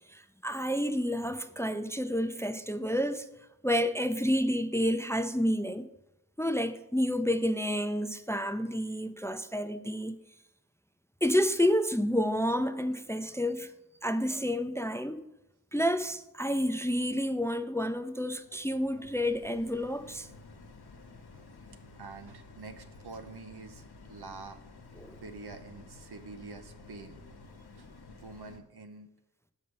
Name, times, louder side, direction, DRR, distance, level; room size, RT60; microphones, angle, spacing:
voice 1, 0.1-3.3 3.6-5.9 6.4-10.1 11.2-13.7 14.0-15.2 15.7-20.3 25.0-25.2, equal, 5° left, 0.4 m, -29 dB
sound 1, 17.6-28.6, left 3 dB, 80° left, 1.0 m, -52 dB
voice 2, 22.0-23.8 24.1-24.6 25.2-27.2 27.7-29.1, right 3 dB, 85° right, 0.9 m, -46 dB
6.4 x 5.4 x 6.9 m
wide cardioid pair, 85°, 38 cm